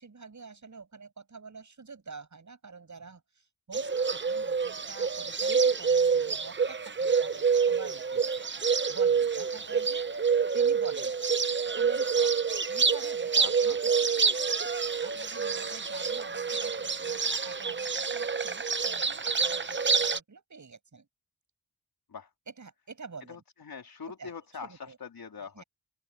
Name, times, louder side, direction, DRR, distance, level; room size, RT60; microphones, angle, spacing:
voice 1, 0.0-11.2 11.5-12.4 12.7-21.1 22.5-23.4 24.2-24.3 24.6-25.0 25.5-25.6, right 4 dB, 50° right, 7.9 m, -48 dB
Bird, 3.7-20.2, right 5 dB, 30° right, 0.7 m, -27 dB
voice 2, 13.4-13.8 14.9-15.0 22.1-22.3 23.3-25.6, left 5 dB, 70° left, 3.5 m, -44 dB
open air
wide cardioid pair, 130°, 37 cm